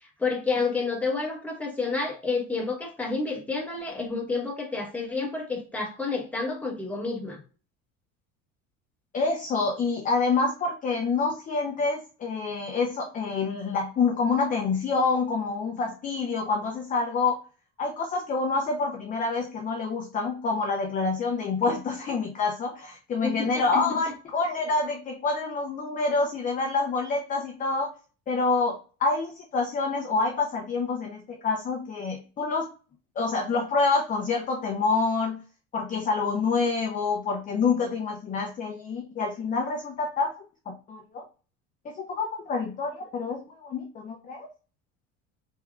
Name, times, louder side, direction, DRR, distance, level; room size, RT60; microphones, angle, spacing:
voice 1, 0.2-7.4 23.2-23.6, left 4 dB, 5° left, -2 dB, 0.9 m, -29 dB
voice 2, 9.1-17.4 17.8-27.9 28.3-32.7 33.2-35.4 35.7-40.3 40.7-41.2 42.0-44.5, left 4 dB, 25° left, 2 dB, 0.5 m, -27 dB
3.5 x 3.3 x 2.3 m, 0.37 s
cardioid pair, 135°, 35 cm